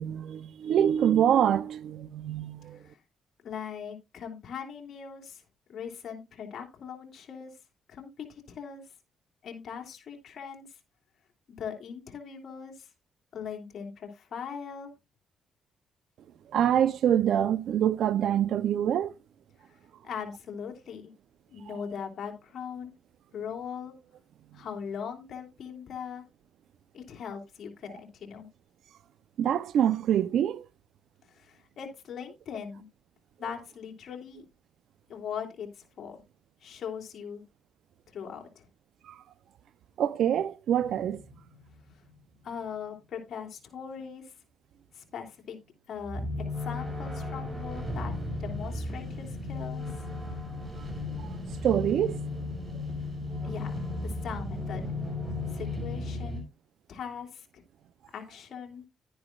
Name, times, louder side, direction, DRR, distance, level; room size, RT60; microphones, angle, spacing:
voice 1, 0.0-2.8 16.5-19.1 21.7-21.8 24.5-24.6 29.4-30.7 39.0-39.2 40.0-41.2 50.8-50.9 51.2-52.3, right 10 dB, 70° right, 0.8 m, -26 dB
voice 2, 3.4-5.4 5.7-7.5 7.9-8.8 9.4-10.7 11.6-12.9 13.3-14.9 20.0-21.1 21.5-22.9 23.3-23.9 24.5-26.2 26.9-28.5 31.3-32.9 33.4-34.4 35.1-35.7 36.0-36.2 36.6-37.4 38.1-38.6 42.4-44.3 44.9-45.6 45.9-48.1 48.4-49.9 53.4-54.9 55.5-56.4 56.9-57.6 58.1-58.8, left 7 dB, 60° left, 2.9 m, -40 dB
sound 1, 40.8-42.1 46.0-56.4, left 2 dB, 25° right, 5.4 m, -35 dB
11.0 x 10.0 x 2.5 m
cardioid pair, 90°, 0 cm